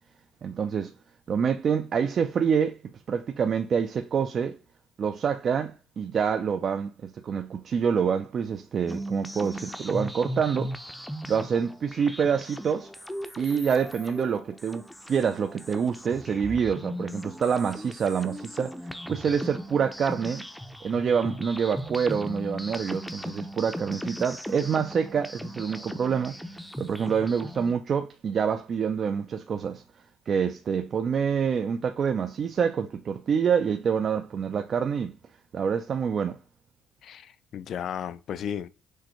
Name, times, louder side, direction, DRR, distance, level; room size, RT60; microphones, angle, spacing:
voice 1, 0.4-0.9 1.3-2.8 3.1-4.6 5.0-10.7 11.3-12.9 13.4-20.5 20.8-26.4 26.8-29.8 30.3-35.1 35.5-36.4, right 7 dB, 50° right, 0.4 m, -27 dB
sound 1, 8.9-27.7, equal, 5° left, 0.5 m, -38 dB
voice 2, 37.0-38.7, left 8 dB, 60° left, 0.4 m, -34 dB
6.4 x 2.6 x 3.0 m
cardioid pair, 90°, 0 cm